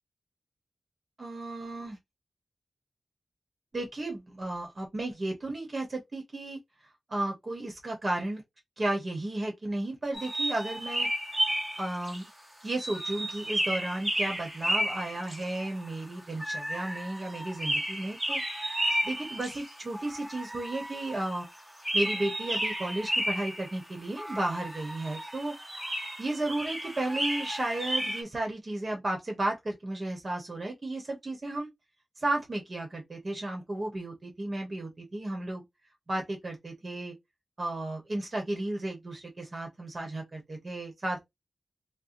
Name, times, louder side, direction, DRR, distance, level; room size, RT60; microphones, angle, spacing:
voice 1, 1.2-2.0 3.7-6.6 7.1-8.4 8.8-11.4 11.7-12.3 12.6-18.4 19.0-21.5 21.9-25.5 26.2-31.7 32.2-35.6 36.1-37.1 37.6-41.3, right 2 dB, 45° right, 1.1 m, -33 dB
sound 1, 10.1-12.2 12.8-15.9 16.4-21.5 21.8-23.8 24.2-28.2, right 1 dB, 10° right, 1.4 m, -33 dB
2.7 x 2.2 x 3.8 m
cardioid pair, 55°, 0 cm